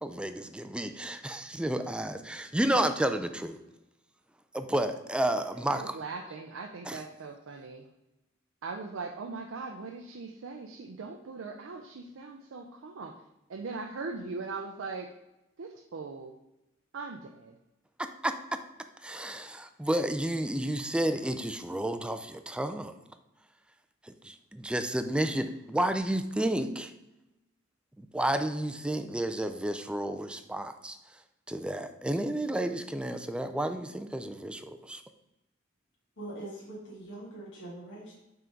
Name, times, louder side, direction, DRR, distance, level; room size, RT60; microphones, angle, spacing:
voice 1, 0.0-3.6 4.5-6.0 6.9-7.0 18.0-18.4 19.0-22.9 24.0-26.9 28.0-31.0 31.5-35.0, right 1 dB, 5° right, 9 dB, 0.3 m, -31 dB
voice 2, 5.7-7.9 8.6-13.2 13.5-15.1 15.6-16.4 16.9-17.6, right 4 dB, 85° right, 3 dB, 0.5 m, -40 dB
voice 3, 36.2-38.1, right 1 dB, 65° left, -6 dB, 2.0 m, -42 dB
5.7 x 3.7 x 5.2 m, 0.95 s
head